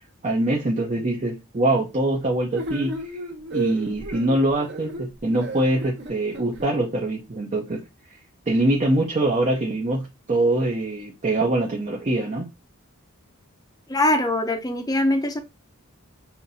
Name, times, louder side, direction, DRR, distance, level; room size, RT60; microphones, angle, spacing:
voice 1, 0.2-3.2 3.5-7.8 8.5-12.5, right 1 dB, 30° right, 0 dB, 0.6 m, -23 dB
sound 1, 2.5-6.7, right 2 dB, 50° right, 1.0 m, -33 dB
voice 2, 13.9-15.4, left 1 dB, 15° left, 6 dB, 0.6 m, -22 dB
5.7 x 2.5 x 2.7 m, 0.26 s
head